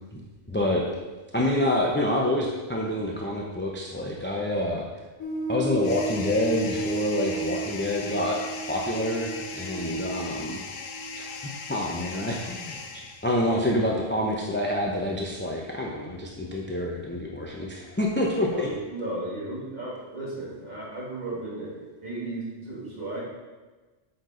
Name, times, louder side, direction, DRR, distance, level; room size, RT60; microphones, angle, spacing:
voice 1, 0.5-0.9 1.3-4.8 5.5-8.4 8.7-10.6 11.2-11.3 11.7-18.7, left 1 dB, 10° left, -2 dB, 0.6 m, -27 dB
sound 1, 5.2-13.6 14.0-14.1 14.6-14.8, right 4 dB, 80° left, 1.5 m, -34 dB
sound 2, 5.8-13.6, left 5 dB, 60° left, 0.9 m, -39 dB
voice 2, 18.5-23.2, right 2 dB, 35° right, -8 dB, 2.8 m, -35 dB
7.8 x 6.0 x 3.9 m, 1.3 s
omnidirectional pair, 1.2 m